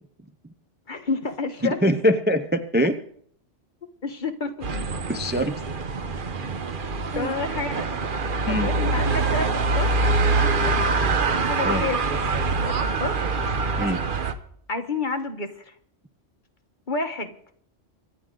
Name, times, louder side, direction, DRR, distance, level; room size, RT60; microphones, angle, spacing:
voice 1, 0.9-1.8 4.0-4.7 7.1-8.0 8.5-9.9 10.6-10.8 11.3-12.2 12.6-13.2 14.7-15.7 16.9-17.3, left 3 dB, 40° left, 6 dB, 1.5 m, -30 dB
voice 2, 1.6-3.0 5.1-5.6 7.1-7.3 8.5-8.7 11.6-11.9 13.8-14.0, equal, 10° right, 8 dB, 0.6 m, -23 dB
sound 1, 4.6-14.3, right 3 dB, 45° right, 1.1 m, -24 dB
25.5 x 10.5 x 3.9 m, 0.63 s
omnidirectional pair, 1.2 m